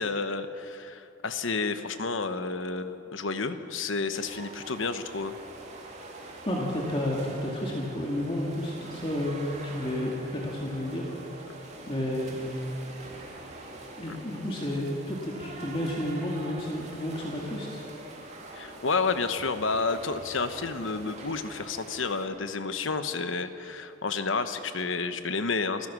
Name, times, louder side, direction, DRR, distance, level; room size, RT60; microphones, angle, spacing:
voice 1, 0.0-5.4 14.1-14.2 18.6-25.9, left 4 dB, 70° left, 10 dB, 1.1 m, -30 dB
sound 1, 4.1-22.3, right 2 dB, 35° right, 2.6 m, -44 dB
voice 2, 6.5-11.1 11.4-12.5 14.0-17.9, left 1 dB, 25° left, -3 dB, 2.2 m, -31 dB
29.0 x 15.0 x 6.3 m, 2.8 s
head